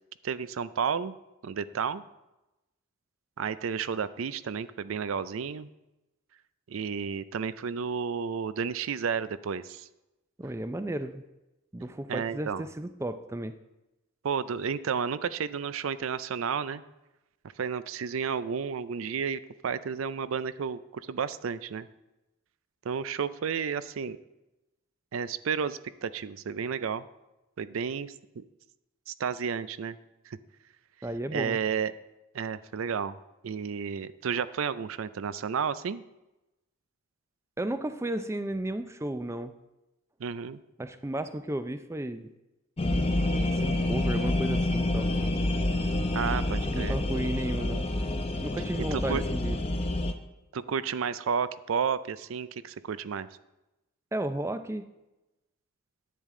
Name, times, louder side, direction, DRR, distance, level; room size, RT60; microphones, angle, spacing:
voice 1, 0.2-1.1 1.4-2.0 3.4-5.7 6.7-9.9 11.8-12.6 14.2-16.8 17.6-21.9 22.8-24.2 25.1-27.0 27.6-28.4 29.1-30.0 30.3-30.4 31.3-31.9 32.3-33.2 33.4-36.0 40.2-40.6 46.1-47.0 48.9-49.2 50.5-53.3, right 6 dB, 80° right, 15 dB, 0.4 m, -32 dB
voice 2, 10.4-11.2 11.7-13.6 31.0-31.6 37.6-39.5 40.8-42.3 43.4-45.1 46.7-47.9 48.4-49.6 54.1-54.9, right 1 dB, 15° right, 10 dB, 0.4 m, -33 dB
sound 1, 42.8-50.1, left 1 dB, 30° left, 0.6 m, -28 dB
10.5 x 8.4 x 3.7 m, 0.98 s
head